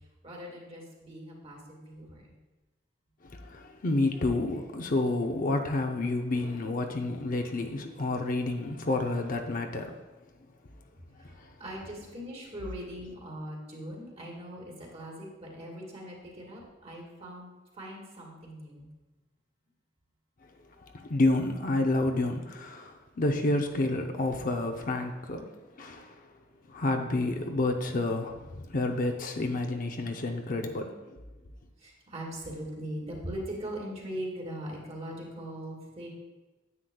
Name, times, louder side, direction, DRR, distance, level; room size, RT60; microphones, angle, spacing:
voice 1, 0.2-2.3 11.3-17.5 17.7-18.9 31.8-36.1, equal, 35° right, -2 dB, 1.8 m, -40 dB
voice 2, 3.2-9.9 11.2-11.5 20.9-25.5 25.8-26.2 26.7-31.0, left 2 dB, 45° left, 4 dB, 0.6 m, -29 dB
9.6 x 8.0 x 2.3 m, 1.2 s
head